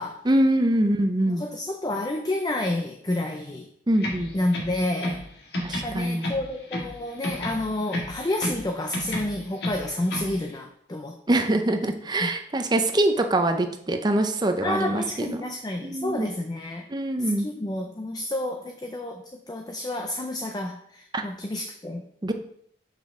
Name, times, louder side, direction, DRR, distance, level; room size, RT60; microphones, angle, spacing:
voice 1, 0.2-1.4 3.9-4.3 5.6-6.3 11.3-15.5 15.8-16.3 16.9-17.5 21.1-21.2 22.2-22.3, right 1 dB, 25° right, 6 dB, 0.6 m, -24 dB
voice 2, 1.4-3.7 4.3-5.2 5.8-11.4 12.2-12.3 14.6-16.9 17.4-22.0, left 1 dB, 20° left, 4 dB, 0.5 m, -30 dB
sound 1, 4.0-5.3 5.5-7.0 7.2-8.7 8.9-10.4, left 1 dB, 60° left, 1.6 m, -31 dB
7.3 x 5.6 x 3.7 m, 0.68 s
head